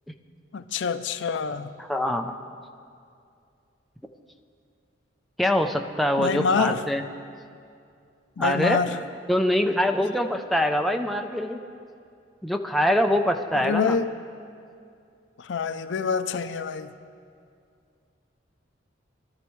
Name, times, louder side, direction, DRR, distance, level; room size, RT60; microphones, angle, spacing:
voice 1, 0.5-1.7 6.2-6.8 8.4-9.0 13.5-14.1 15.4-16.9, left 5 dB, 70° left, 11 dB, 0.5 m, -26 dB
voice 2, 1.8-2.4 5.4-7.0 8.4-8.9 9.3-11.6 12.4-14.0, equal, ahead, 3 dB, 0.5 m, -24 dB
22.0 x 12.5 x 3.1 m, 2.4 s
head